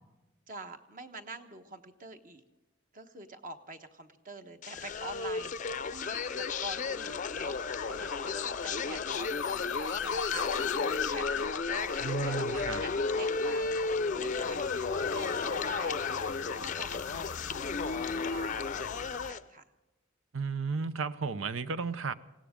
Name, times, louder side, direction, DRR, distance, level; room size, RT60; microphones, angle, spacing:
voice 1, 0.5-2.4 2.9-16.1 16.6-19.6, right 2 dB, 45° right, 7 dB, 1.2 m, -46 dB
sound 1, 4.6-19.4, left 4 dB, 40° left, 0.5 m, -34 dB
sound 2, 4.8-19.3, left 7 dB, 80° left, 0.7 m, -39 dB
voice 2, 12.0-12.8 20.3-22.1, right 5 dB, 90° right, 14 dB, 0.7 m, -33 dB
20.0 x 17.0 x 3.7 m, 1.1 s
head